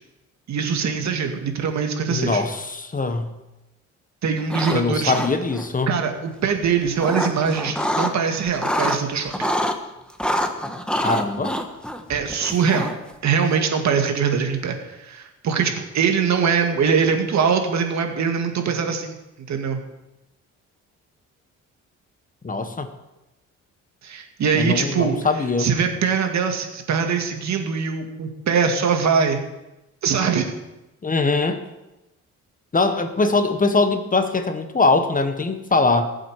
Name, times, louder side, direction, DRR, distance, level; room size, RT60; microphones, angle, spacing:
voice 1, 0.5-2.4 4.2-5.1 5.9-9.5 12.1-12.9 13.2-19.2 19.5-19.8 24.0-25.2 25.6-29.4 30.0-30.5, right 6 dB, 65° right, 5 dB, 2.0 m, -22 dB
voice 2, 2.1-3.3 4.7-5.9 11.0-11.5 22.4-22.9 24.5-25.7 31.0-31.6 32.7-36.1, left 3 dB, 25° left, 8 dB, 1.4 m, -22 dB
sound 1, 4.4-4.8 5.0-5.7 6.6-8.1 8.5-9.8 10.2-13.1, equal, 5° left, 1.3 m, -26 dB
19.5 x 7.7 x 4.8 m, 0.99 s
cardioid pair, 90°, 30 cm